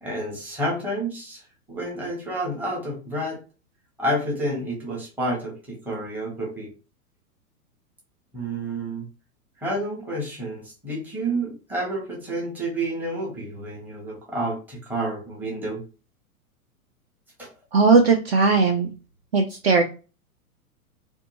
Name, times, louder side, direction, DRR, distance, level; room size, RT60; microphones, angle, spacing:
voice 1, 0.0-1.4 1.7-3.4 4.0-6.7 8.3-9.0 9.6-15.8 17.4-17.5, right 1 dB, 5° right, -3 dB, 0.7 m, -29 dB
voice 2, 17.7-18.9 19.3-19.8, right 4 dB, 45° right, 4 dB, 0.4 m, -18 dB
2.6 x 2.2 x 2.7 m, 0.33 s
figure-of-eight pair, 100°, 44 cm